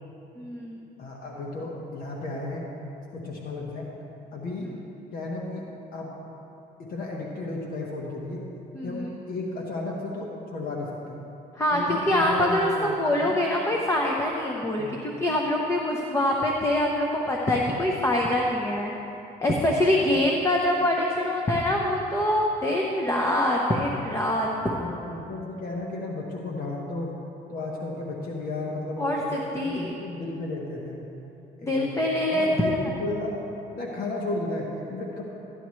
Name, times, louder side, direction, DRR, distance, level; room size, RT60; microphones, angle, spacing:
voice 1, 0.4-0.8 8.7-9.1 11.6-12.7 13.0-18.9 19.4-24.5 29.0-29.9 31.6-32.8, left 1 dB, 15° left, -1 dB, 0.9 m, -24 dB
voice 2, 1.0-2.6 3.1-3.8 4.3-4.7 5.1-5.6 5.9-6.1 6.8-8.4 8.8-11.2 11.7-13.5 14.8-15.0 24.7-27.1 27.5-29.2 29.6-31.0 31.6-32.0 32.3-33.4 33.7-35.2, left 2 dB, 60° left, -2 dB, 1.2 m, -33 dB
13.5 x 10.0 x 3.2 m, 3.0 s
cardioid pair, 110°, 17 cm